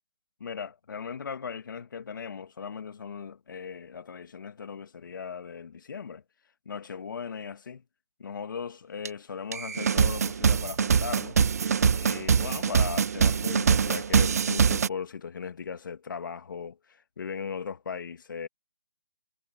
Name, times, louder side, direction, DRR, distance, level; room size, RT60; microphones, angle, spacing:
voice 1, 0.4-6.2 6.7-7.8 8.2-11.4 12.0-18.5, left 6 dB, 55° left, 2.1 m, -38 dB
sound 1, 9.0-9.1 9.5-14.9, right 6 dB, 40° right, 0.4 m, -24 dB
hypercardioid pair, 170°, 13 cm